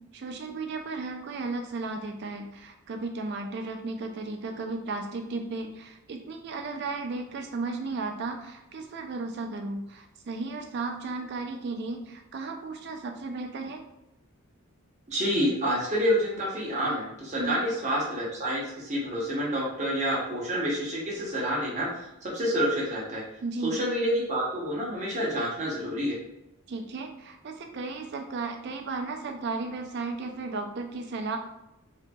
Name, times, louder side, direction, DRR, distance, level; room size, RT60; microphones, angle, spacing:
voice 1, 0.1-13.8 17.4-17.6 23.4-23.8 26.7-31.4, right 3 dB, 50° right, 4 dB, 0.3 m, -34 dB
voice 2, 15.1-23.2 23.6-26.1, equal, 30° right, -5 dB, 0.7 m, -28 dB
2.7 x 2.6 x 2.2 m, 0.91 s
head